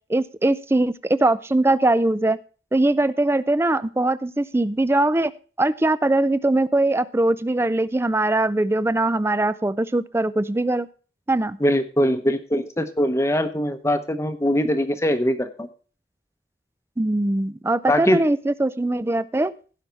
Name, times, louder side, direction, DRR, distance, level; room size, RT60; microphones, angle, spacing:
voice 1, 0.1-2.4 2.7-5.3 5.6-10.9 11.3-11.6 17.0-19.5, right 2 dB, 15° right, 16 dB, 0.4 m, -21 dB
voice 2, 11.6-15.7 17.9-18.2, equal, 15° left, 9 dB, 0.8 m, -22 dB
16.5 x 5.6 x 4.5 m, 0.38 s
head